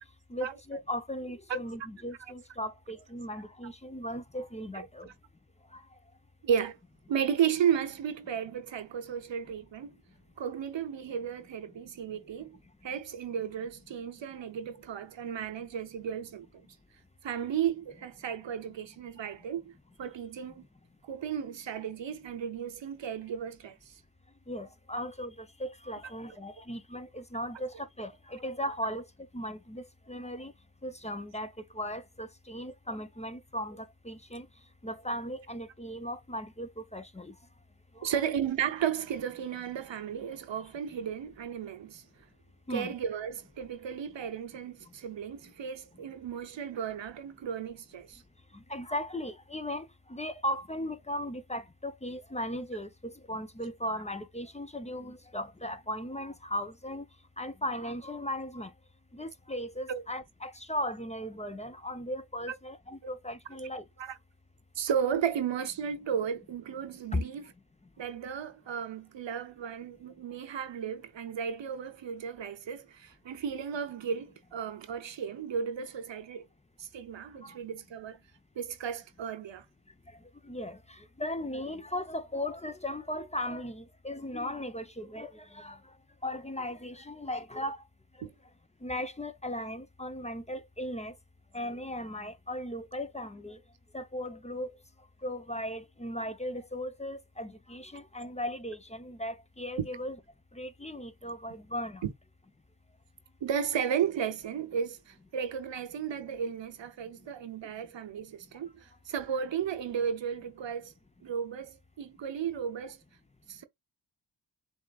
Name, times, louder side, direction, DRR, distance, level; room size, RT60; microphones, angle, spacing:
voice 1, 0.3-5.1 24.5-29.0 29.3-30.5 30.8-34.5 34.8-37.3 38.0-38.1 42.7-42.9 48.7-57.1 57.4-58.7 59.1-63.8 67.1-67.2 77.4-77.6 80.5-85.8 86.2-87.8 88.8-91.1 91.5-93.6 93.9-94.7 95.2-100.2 100.5-102.0, left 1 dB, 15° left, 0.7 m, -37 dB
voice 2, 4.7-5.1 6.4-6.8 7.1-10.0 10.4-12.6 12.8-16.7 17.2-19.7 20.0-20.6 21.1-24.0 38.0-42.0 42.7-48.2 59.9-60.0 64.0-64.2 64.7-67.5 68.0-76.5 76.8-78.2 78.6-79.6 88.2-88.3 99.8-99.9 102.0-102.1 103.4-110.9 111.2-113.0 113.5-113.6, right 8 dB, 75° right, 0.8 m, -34 dB
6.9 x 2.6 x 2.4 m
cardioid pair, 50°, 45 cm